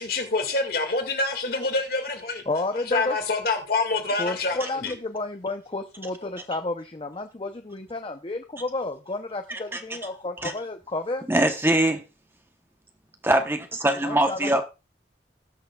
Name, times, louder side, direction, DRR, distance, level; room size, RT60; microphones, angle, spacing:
voice 1, 0.0-2.4 2.9-4.9, left 3 dB, 55° left, 1.9 m, -26 dB
voice 2, 2.5-3.2 4.2-11.3 14.0-14.6, left 2 dB, 30° left, 0.6 m, -31 dB
voice 3, 9.5-9.8 10.4-10.5 11.3-12.0 13.2-14.6, right 1 dB, 15° right, 0.9 m, -22 dB
19.0 x 6.6 x 2.3 m
head